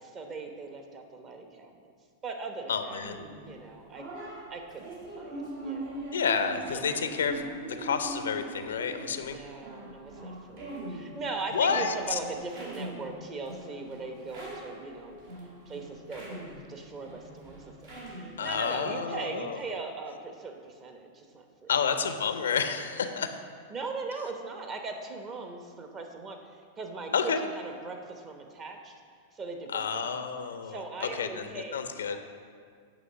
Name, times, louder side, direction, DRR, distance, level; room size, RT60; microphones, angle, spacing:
voice 1, 0.0-1.9 2.2-3.1 3.4-4.1 4.5-6.0 6.7-7.0 9.2-15.2 15.7-17.7 18.0-21.7 22.4-22.6 23.7-28.9 29.3-30.2 30.6-31.7 32.1-32.2, right 3 dB, 30° right, 4 dB, 0.9 m, -40 dB
voice 2, 2.7-3.2 6.1-7.4 7.8-9.4 11.5-12.2 18.4-19.6 21.7-23.4 27.1-27.4 29.7-32.2, left 6 dB, 85° left, 8 dB, 0.5 m, -30 dB
sound 1, 3.0-18.7, right 1 dB, 65° right, 1.4 m, -42 dB
8.3 x 3.1 x 6.2 m, 2.1 s
hypercardioid pair, 110°, 0 cm